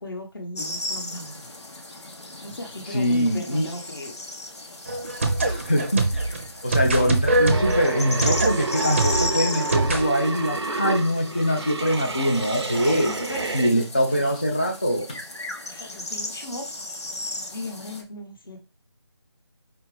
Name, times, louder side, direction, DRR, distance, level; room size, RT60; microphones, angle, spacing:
voice 1, 0.0-1.5 2.4-4.2 5.1-5.4 12.8-13.5 13.7-13.9 15.6-16.7 17.5-18.6, left 1 dB, 55° left, 3 dB, 1.2 m, -37 dB
sound 1, 0.5-18.0, left 2 dB, 80° left, 1.1 m, -36 dB
voice 2, 2.9-3.7 5.4-6.3 6.6-13.1 13.5-15.2, equal, 20° left, 0 dB, 0.3 m, -23 dB
sound 2, 4.9-10.0, right 2 dB, 25° right, 0.6 m, -24 dB
sound 3, 7.5-13.7, right 3 dB, 75° right, 0.6 m, -30 dB
4.9 x 2.9 x 3.2 m, 0.29 s
figure-of-eight pair, 170°, 14 cm